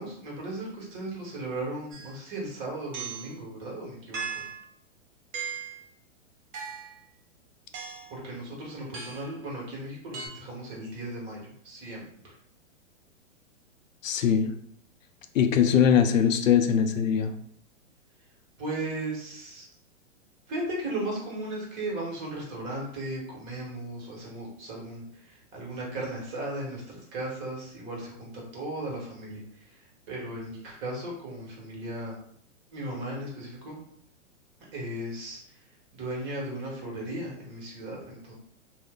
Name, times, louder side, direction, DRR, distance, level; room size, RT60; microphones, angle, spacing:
voice 1, 0.0-4.4 8.1-12.4 18.6-19.7 20.5-32.2 32.7-33.8 34.7-35.6 35.9-38.3, right 1 dB, 30° right, -3 dB, 1.2 m, -36 dB
sound 1, 1.9-2.1 2.9-3.3 4.1-4.6 5.3-5.8 6.5-7.0 7.7-8.1 8.9-9.4 10.1-10.3, right 6 dB, 65° right, 0.9 m, -37 dB
voice 2, 14.0-14.5 15.3-17.3, left 8 dB, 85° left, 8 dB, 0.5 m, -21 dB
2.5 x 2.0 x 3.5 m, 0.64 s
hypercardioid pair, 130°, 38 cm